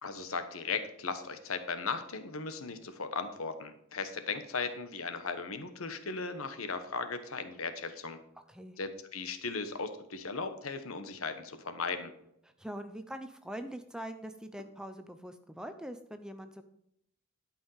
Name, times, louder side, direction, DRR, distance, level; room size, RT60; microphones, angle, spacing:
voice 1, 0.0-8.2 8.8-12.1, left 4 dB, 85° left, 9 dB, 1.3 m, -37 dB
voice 2, 12.6-16.6, equal, 5° right, 8 dB, 0.5 m, -43 dB
12.0 x 5.4 x 5.6 m, 0.76 s
head